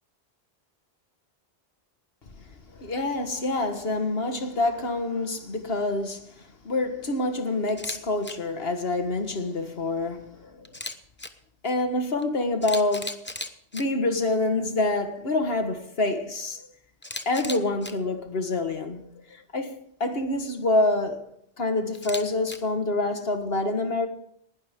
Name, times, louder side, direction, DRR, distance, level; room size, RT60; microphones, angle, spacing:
voice 1, 2.7-10.7 11.6-13.3 13.7-16.7 17.3-21.3 21.6-24.1, left 2 dB, 65° left, 1.8 m, -27 dB
Camera, 7.7-8.0 8.2-8.3 10.6-11.3 12.2-12.3 12.6-13.8 17.0-17.9 21.9-22.6, left 1 dB, 10° left, 0.8 m, -35 dB
19.0 x 12.0 x 3.7 m
omnidirectional pair, 1.1 m